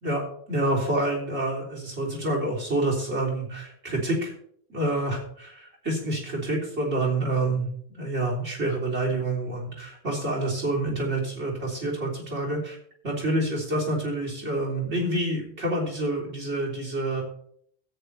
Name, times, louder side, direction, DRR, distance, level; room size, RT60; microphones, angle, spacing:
voice 1, 0.0-4.3 4.7-7.7 8.0-12.8 13.0-17.2, right 2 dB, 80° right, -1 dB, 3.9 m, -27 dB
13.5 x 9.0 x 3.4 m, 0.63 s
omnidirectional pair, 1.1 m